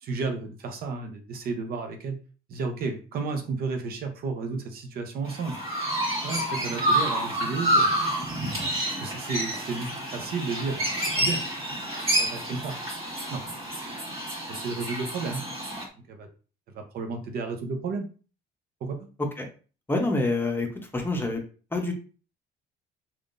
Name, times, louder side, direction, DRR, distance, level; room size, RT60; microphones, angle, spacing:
voice 1, 0.0-2.2 2.5-5.6 6.2-7.9 8.9-11.4 12.1-12.8 13.3-13.4 13.8-13.9 14.5-15.4 16.1-16.3 16.7-18.1 18.8-19.1, right 4 dB, 65° right, 5 dB, 0.7 m, -32 dB
Chirp tweet, 5.3-15.8, right 1 dB, 35° right, 1.6 m, -28 dB
voice 2, 19.9-21.4 21.7-21.9, left 2 dB, 15° left, 2 dB, 0.7 m, -27 dB
3.5 x 2.4 x 2.5 m, 0.36 s
cardioid pair, 110°, 17 cm